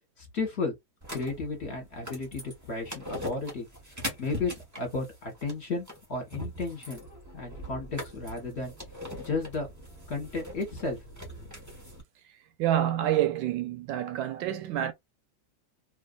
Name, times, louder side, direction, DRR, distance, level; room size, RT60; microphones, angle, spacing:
voice 1, 0.2-0.7 1.1-3.7 4.2-7.0 7.3-8.7 9.2-9.7 10.1-11.0, left 3 dB, 40° left, 1.2 m, -33 dB
sound 1, 1.0-12.0, equal, 15° right, 0.6 m, -42 dB
voice 2, 12.6-14.9, right 12 dB, 80° right, 1.3 m, -27 dB
3.2 x 2.5 x 2.4 m
omnidirectional pair, 2.1 m